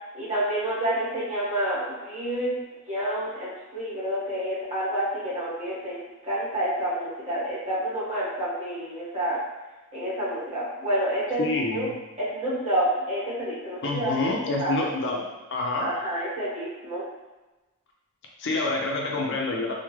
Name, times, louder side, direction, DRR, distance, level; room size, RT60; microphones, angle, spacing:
voice 1, 0.1-2.5 2.9-9.4 9.9-11.4 11.7-11.9 12.3-14.1 14.6-14.8 15.7-17.0, right 1 dB, 30° right, -10 dB, 1.4 m, -28 dB
voice 2, 11.4-11.9 13.8-15.2 15.5-15.9 18.4-19.7, left 2 dB, 55° left, -1 dB, 0.5 m, -27 dB
3.5 x 2.1 x 3.0 m, 1.1 s
head